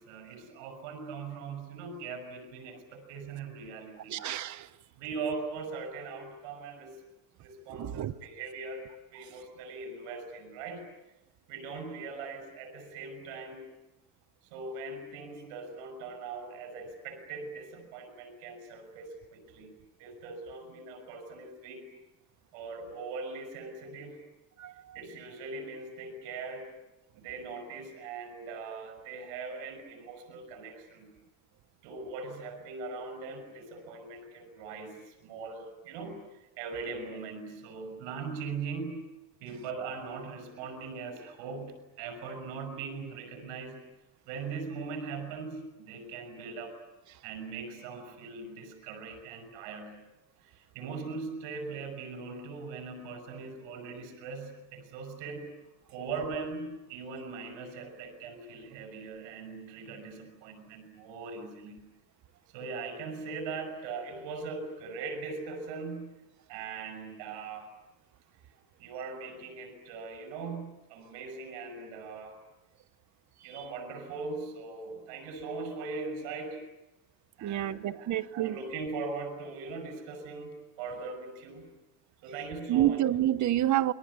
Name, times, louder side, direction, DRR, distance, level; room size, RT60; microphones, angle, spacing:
voice 1, 0.0-4.2 5.0-7.0 7.4-10.9 11.5-13.8 14.5-21.9 22.5-24.2 24.9-26.7 27.1-31.1 31.8-39.1 39.4-43.9 44.3-46.8 47.2-50.0 50.4-55.5 55.9-61.8 62.5-66.2 66.5-67.7 68.8-72.4 73.4-76.6 77.4-81.7 82.2-83.0, right 4 dB, 80° right, 5 dB, 6.2 m, -40 dB
voice 2, 4.1-4.7 7.7-8.1 24.6-25.0 73.5-73.6 77.4-78.6 82.7-83.9, right 13 dB, 35° right, 11 dB, 1.1 m, -29 dB
27.5 x 22.0 x 9.7 m, 1.0 s
cardioid pair, 145°, 47 cm